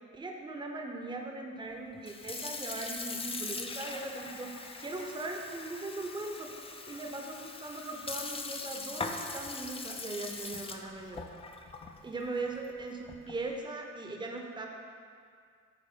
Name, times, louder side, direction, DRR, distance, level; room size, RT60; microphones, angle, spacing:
voice 1, 0.1-4.5 4.8-11.3 12.0-14.7, right 2 dB, 15° right, 1 dB, 0.7 m, -39 dB
Sink (filling or washing) / Fill (with liquid), 1.9-13.5, left 3 dB, 20° left, 0.4 m, -41 dB
8.5 x 3.0 x 4.5 m, 2.2 s
cardioid pair, 90°, 30 cm